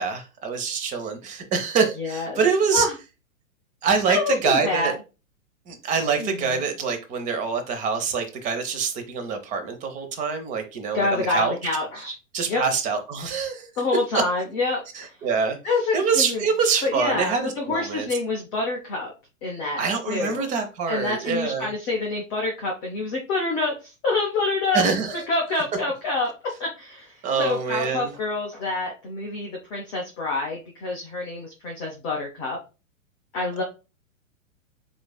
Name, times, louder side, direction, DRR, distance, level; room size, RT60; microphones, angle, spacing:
voice 1, 0.0-2.9 3.8-4.9 5.7-11.6 12.3-13.7 14.1-14.2 14.9-15.6 15.9-18.1 19.8-21.7 24.7-25.2 27.2-28.1, right 5 dB, 20° right, 0.8 m, -25 dB
voice 2, 2.0-2.4 2.7-2.9 4.1-4.9 6.2-6.6 10.9-12.1 12.5-12.6 13.8-14.8 15.6-16.4 16.8-19.1 19.4-20.5 20.9-24.8 25.3-26.3 26.6-32.6 33.3-33.6, left 3 dB, 10° left, 0.4 m, -27 dB
7.6 x 2.6 x 2.2 m
figure-of-eight pair, 110°, 40 cm